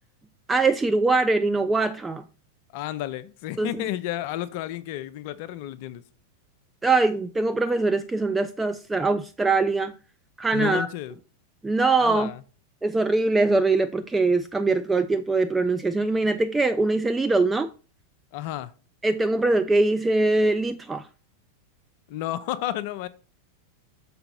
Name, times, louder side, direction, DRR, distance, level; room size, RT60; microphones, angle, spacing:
voice 1, 0.5-2.2 3.6-3.9 6.8-9.9 10.4-10.9 11.6-12.3 12.8-17.7 19.0-21.1, right 3 dB, 10° right, 0.3 m, -22 dB
voice 2, 2.7-6.0 10.5-11.1 12.0-12.4 18.3-18.7 22.1-23.1, left 13 dB, 45° left, 0.5 m, -31 dB
6.7 x 4.8 x 4.1 m
figure-of-eight pair, 90°, 0 cm